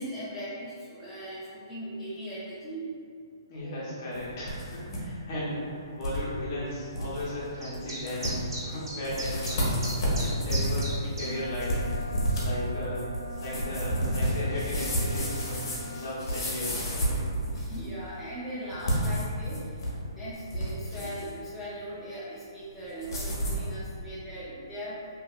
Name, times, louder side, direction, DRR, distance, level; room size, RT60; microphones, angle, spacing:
voice 1, 0.0-2.9 17.5-25.1, right 1 dB, 5° left, -12 dB, 0.5 m, -39 dB
voice 2, 3.5-9.8 10.2-13.1 13.4-16.9, left 1 dB, 40° left, -8 dB, 1.0 m, -36 dB
sound 1, 4.1-5.0 5.3-5.4 6.0-6.2 6.6-6.7 6.9-7.2 7.7-7.8 8.1-8.6 9.0-17.9 18.7-20.0 20.3-21.3 23.0-23.7, equal, 60° left, 0.9 m, -30 dB
sound 2, 7.6-11.3, right 1 dB, 70° right, 1.0 m, -37 dB
Wind instrument woodwind instrument, 11.2-16.1, right 1 dB, 50° right, 0.6 m, -42 dB
2.7 x 2.7 x 2.4 m, 2.3 s
hypercardioid pair, 145°, 2 cm